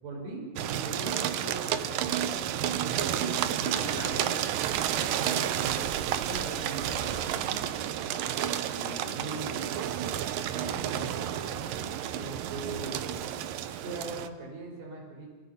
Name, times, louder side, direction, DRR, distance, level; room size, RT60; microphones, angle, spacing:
voice 1, 0.0-2.4 3.0-3.4 4.9-7.6 9.1-9.7 10.5-13.0 13.8-15.3, right 3 dB, 45° right, -1 dB, 6.7 m, -40 dB
sound 1, 0.6-14.3, right 10 dB, 75° right, 2.5 m, -31 dB
voice 2, 3.5-4.6 8.5-9.9, left 2 dB, 15° left, 0 dB, 3.1 m, -43 dB
27.0 x 24.5 x 5.7 m, 1.4 s
omnidirectional pair, 4.3 m